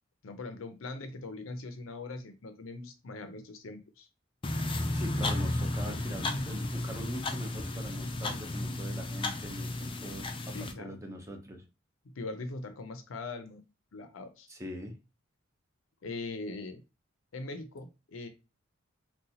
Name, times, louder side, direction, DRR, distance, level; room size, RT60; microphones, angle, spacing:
voice 1, 0.2-4.1 10.5-11.0 12.2-13.6 13.9-14.5 16.0-16.8 17.3-18.3, left 3 dB, 70° left, 8 dB, 0.6 m, -41 dB
sound 1, 4.4-10.7, left 2 dB, 25° left, 0.4 m, -33 dB
voice 2, 4.9-11.6 14.5-14.9, equal, 15° right, 3 dB, 0.6 m, -41 dB
3.8 x 2.2 x 2.8 m, 0.29 s
head